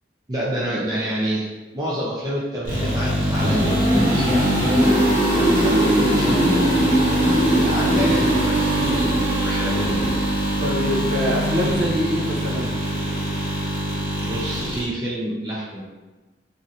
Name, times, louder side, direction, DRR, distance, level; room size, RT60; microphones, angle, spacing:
voice 1, 0.3-1.5 1.7-9.8 14.2-15.8, right 1 dB, 20° right, -6 dB, 0.4 m, -29 dB
sound 1, 2.7-14.8, equal, 45° right, 1.4 m, -20 dB
voice 2, 10.6-12.7, equal, 70° right, -1 dB, 0.6 m, -24 dB
3.1 x 2.5 x 2.6 m, 1.2 s
head